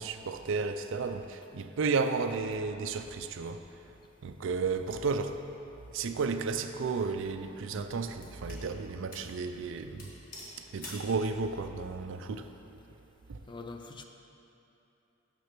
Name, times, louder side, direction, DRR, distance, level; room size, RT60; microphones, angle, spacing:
voice 1, 0.0-3.6 4.2-5.4 5.9-10.1 10.7-12.5 13.3-13.4, right 4 dB, 65° right, 8 dB, 0.4 m, -33 dB
sound 1, 6.7-6.8 7.4-8.7 9.1-9.4 9.6-9.7 10.0-11.1, left 1 dB, 45° left, 1.7 m, -47 dB
voice 2, 13.5-14.0, left 3 dB, 25° left, 5 dB, 0.5 m, -43 dB
6.7 x 6.4 x 6.0 m, 2.9 s
head